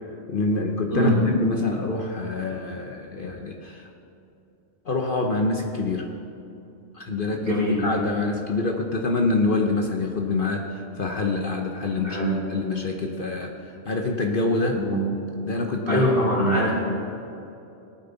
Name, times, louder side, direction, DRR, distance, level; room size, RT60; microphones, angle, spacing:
voice 1, 0.3-3.9 4.9-6.1 6.9-12.2 12.5-13.5 13.8-14.8 15.4-16.1, left 3 dB, 50° left, 2 dB, 1.0 m, -26 dB
voice 2, 0.9-1.2 7.4-7.8 12.0-12.4 14.7-15.0 15.9-16.7, equal, 45° right, -7 dB, 3.7 m, -22 dB
18.5 x 9.3 x 4.0 m, 2.8 s
omnidirectional pair, 1.3 m